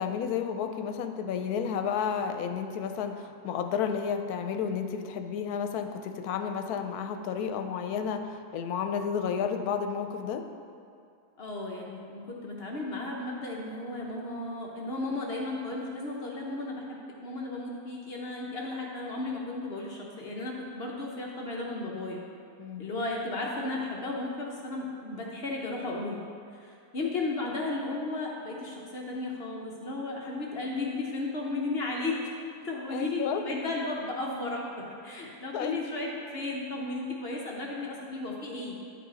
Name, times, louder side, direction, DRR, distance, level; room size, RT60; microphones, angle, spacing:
voice 1, 0.0-10.4 22.6-22.9 32.9-33.4 35.5-35.8, left 7 dB, 85° left, 7 dB, 1.1 m, -31 dB
voice 2, 11.4-22.2 22.8-26.2 26.6-32.2 32.6-38.7, left 2 dB, 50° left, -2 dB, 0.9 m, -34 dB
10.0 x 4.7 x 4.0 m, 2.4 s
omnidirectional pair, 1.6 m